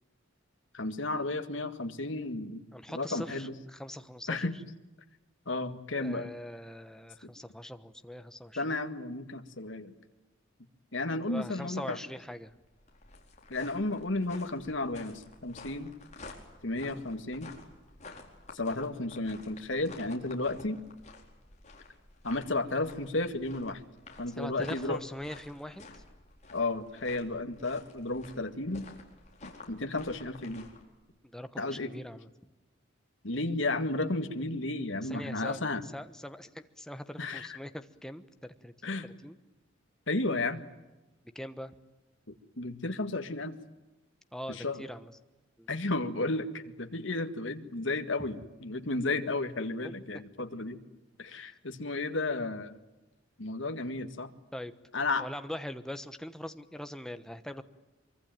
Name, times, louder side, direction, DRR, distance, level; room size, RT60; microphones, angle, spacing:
voice 1, 0.7-2.6 2.9-3.6 4.3-4.5 5.5-6.3 7.2-7.3 8.6-9.9 10.9-12.0 13.5-15.9 16.6-17.5 18.5-20.8 22.2-23.8 24.2-25.0 26.5-28.9 29.4-30.7 31.6-31.9 33.2-35.8 37.2-37.6 38.8-39.1 40.1-40.6 42.6-43.5 44.5-44.8 45.7-50.8 51.2-52.8 53.4-54.3 54.9-55.3, left 2 dB, 70° left, 7 dB, 2.0 m, -33 dB
voice 2, 2.7-4.5 5.9-8.8 11.2-12.5 24.3-26.0 31.2-32.3 35.0-38.7 39.0-39.4 41.3-41.8 44.3-45.1 45.6-45.7 48.2-48.3 49.8-49.9 51.3-51.5 54.5-54.7 55.2-57.6, equal, 5° left, 9 dB, 1.2 m, -42 dB
sound 1, 12.5-30.8, left 3 dB, 35° left, 4.6 m, -51 dB
24.5 x 24.0 x 9.1 m, 1.0 s
head